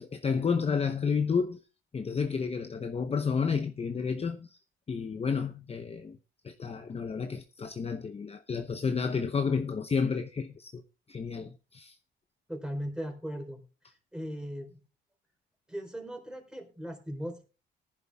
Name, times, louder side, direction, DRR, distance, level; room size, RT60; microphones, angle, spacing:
voice 1, 0.0-1.6 1.9-4.6 4.9-6.2 6.4-10.8 11.1-12.0, left 5 dB, 30° left, 0.8 m, -31 dB
voice 2, 12.5-13.6 14.1-14.8 15.7-17.5, equal, 5° right, 4.0 m, -38 dB
19.0 x 11.0 x 2.3 m
cardioid pair, 90°, 20 cm